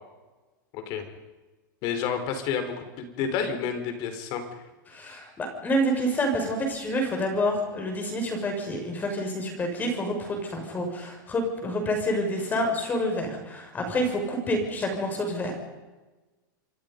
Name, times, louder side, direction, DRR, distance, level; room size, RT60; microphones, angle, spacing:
voice 1, 0.7-1.1 1.8-4.6, left 7 dB, 40° left, 7 dB, 4.4 m, -30 dB
voice 2, 4.9-15.5, equal, 15° left, 3 dB, 6.0 m, -28 dB
27.5 x 23.5 x 5.4 m, 1.2 s
supercardioid pair, 155°, 11 cm